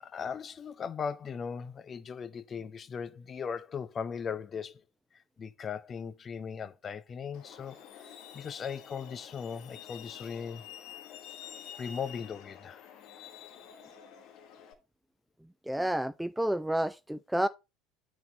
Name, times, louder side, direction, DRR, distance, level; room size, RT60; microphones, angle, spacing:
voice 1, 0.0-4.8 5.4-7.8 8.3-10.6 11.8-12.8, left 6 dB, 30° left, 0.7 m, -38 dB
Truck, 7.3-14.7, left 9 dB, 50° left, 1.4 m, -49 dB
voice 2, 15.7-17.5, right 1 dB, 5° right, 0.3 m, -30 dB
9.2 x 4.1 x 4.2 m
figure-of-eight pair, 70°, 0 cm